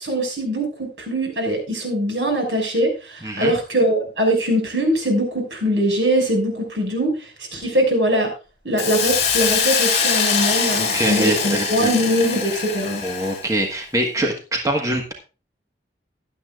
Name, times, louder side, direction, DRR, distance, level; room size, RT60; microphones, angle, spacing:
voice 1, 0.0-8.3 8.6-13.0, equal, 75° right, 2 dB, 5.9 m, -22 dB
Hiss, 8.8-13.5, left 6 dB, 40° left, 4.1 m, -22 dB
voice 2, 10.8-11.9 13.0-15.1, right 1 dB, 20° right, 2 dB, 1.4 m, -24 dB
16.0 x 11.5 x 2.4 m, 0.32 s
head